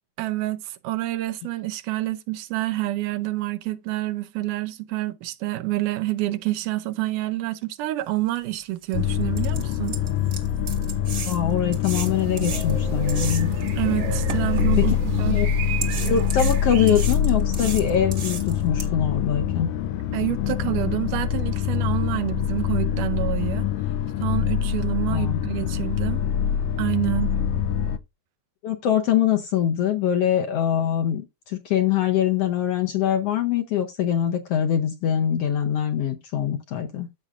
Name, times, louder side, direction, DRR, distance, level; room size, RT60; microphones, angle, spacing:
voice 1, 0.2-10.0 13.8-15.4 20.1-23.7 24.2-26.2 26.8-27.3, right 16 dB, 85° right, 2.2 m, -28 dB
sound 1, 8.4-8.5 8.9-9.0 9.4-13.7 14.3-15.3 15.8-18.8, right 5 dB, 45° right, 1.3 m, -34 dB
sound 2, 8.9-28.0, left 9 dB, 85° left, 1.5 m, -25 dB
voice 2, 11.3-13.5 14.8-14.9 15.3-15.5 16.0-19.7 25.1-25.8 28.6-37.1, left 9 dB, 70° left, 1.5 m, -23 dB
sound 3, 11.9-17.1, right 7 dB, 65° right, 2.0 m, -32 dB
14.0 x 5.0 x 2.5 m
omnidirectional pair, 3.5 m